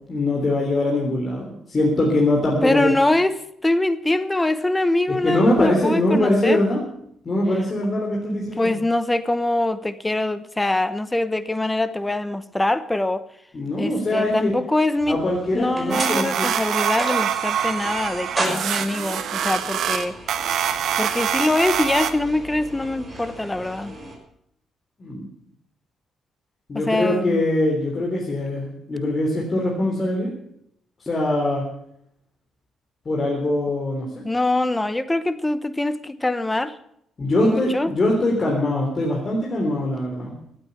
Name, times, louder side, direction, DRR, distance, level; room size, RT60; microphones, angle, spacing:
voice 1, 0.1-2.9 5.2-6.8 7.2-8.7 13.5-14.6 15.1-16.5 25.0-25.3 26.7-30.3 31.0-31.6 33.1-34.1 37.2-40.3, left 1 dB, 35° left, -1 dB, 3.5 m, -22 dB
voice 2, 2.6-3.3 3.6-6.6 8.3-13.2 13.8-15.2 15.5-20.1 21.0-23.9 26.7-27.4 34.2-36.8 37.4-37.9, left 2 dB, 15° left, 13 dB, 1.0 m, -23 dB
sound 1, 15.0-24.2, right 2 dB, 20° right, 5.6 m, -35 dB
sound 2, 15.9-22.1, right 9 dB, 70° right, 1.4 m, -25 dB
15.5 x 8.9 x 8.3 m, 0.73 s
cardioid pair, 90°, 0 cm